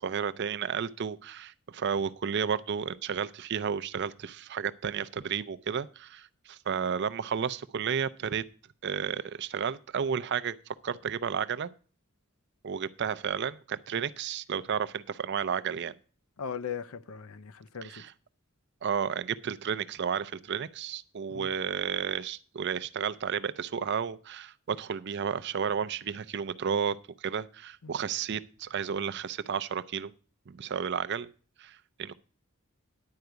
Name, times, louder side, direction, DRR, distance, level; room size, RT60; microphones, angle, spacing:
voice 1, 0.0-8.4 8.8-10.6 10.8-11.7 12.6-15.9 17.8-18.1 18.8-30.1 30.5-31.3 31.6-32.1, right 7 dB, 50° right, 0.5 m, -32 dB
voice 2, 16.4-18.0 21.3-21.5 27.8-27.9, left 7 dB, 80° left, 0.6 m, -38 dB
10.5 x 4.8 x 7.9 m
head